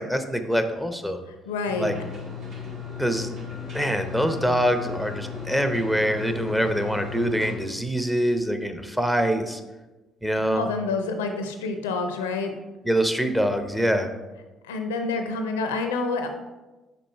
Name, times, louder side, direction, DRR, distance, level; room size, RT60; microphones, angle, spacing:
voice 1, 0.0-1.2 1.8-1.9 3.0-3.3 3.7-9.6 10.2-10.7 12.9-14.1, equal, 5° right, 7 dB, 0.7 m, -24 dB
voice 2, 1.3-1.9 10.5-12.5 14.6-16.3, left 3 dB, 75° left, 6 dB, 0.5 m, -28 dB
sound 1, 1.7-7.5, left 6 dB, 55° right, 2.0 m, -36 dB
5.4 x 5.0 x 4.3 m, 1.1 s
figure-of-eight pair, 50°, 0 cm